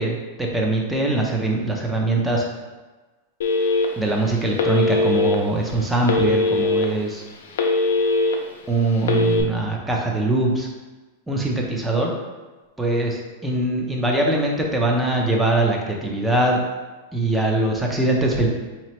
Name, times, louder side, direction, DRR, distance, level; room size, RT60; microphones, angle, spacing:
voice 1, 0.0-2.4 4.0-7.2 8.7-10.7 11.3-12.1 12.8-16.6 17.1-18.5, right 2 dB, 5° right, -1 dB, 0.5 m, -22 dB
Telephone, 3.4-4.1 4.6-5.4 6.1-6.8 7.3-8.3 9.0-9.4, left 3 dB, 85° left, 0.5 m, -20 dB
4.1 x 2.9 x 3.0 m, 1.2 s
supercardioid pair, 150°, 0 cm